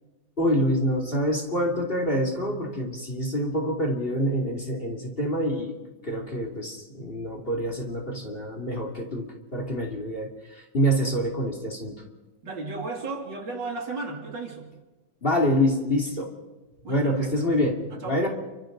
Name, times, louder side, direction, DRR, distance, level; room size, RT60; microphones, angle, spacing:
voice 1, 0.4-5.7 6.0-12.0 15.2-16.3 16.9-18.3, equal, 30° left, 2 dB, 2.7 m, -26 dB
voice 2, 12.4-14.7 16.1-16.3 16.8-17.3 17.9-18.2, right 3 dB, 65° right, 1 dB, 3.4 m, -35 dB
29.5 x 24.5 x 3.9 m, 1.2 s
omnidirectional pair, 2.2 m